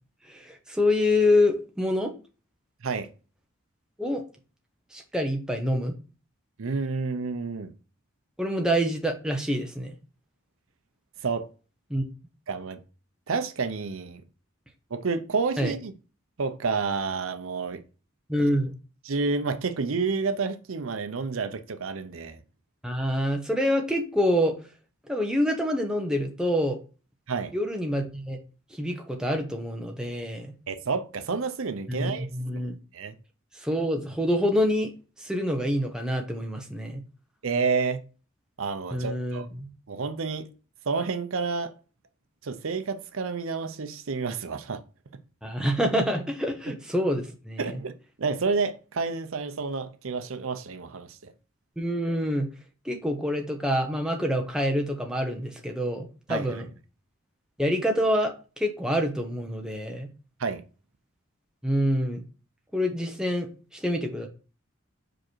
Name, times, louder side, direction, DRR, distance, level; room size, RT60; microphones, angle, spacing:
voice 1, 0.3-2.1 4.0-4.2 4.9-5.9 8.4-10.0 11.9-12.0 15.6-15.7 18.3-18.7 22.8-24.6 25.1-26.8 27.5-28.4 28.7-30.5 31.9-32.8 33.6-34.9 35.2-37.0 38.9-39.7 45.4-47.8 51.8-52.5 52.8-56.7 57.6-60.1 61.6-62.2 62.7-64.3, equal, 5° right, 0.8 m, -26 dB
voice 2, 6.6-7.7 11.2-11.5 12.5-12.8 13.3-14.2 14.9-15.9 16.4-17.8 19.0-22.4 27.3-27.5 30.7-32.7 32.9-33.1 37.4-38.0 38.6-39.5 39.9-40.5 40.9-41.7 42.4-44.8 47.6-51.3 56.3-56.6 60.4-60.6, right 4 dB, 70° right, 0.6 m, -29 dB
5.1 x 4.9 x 4.5 m
head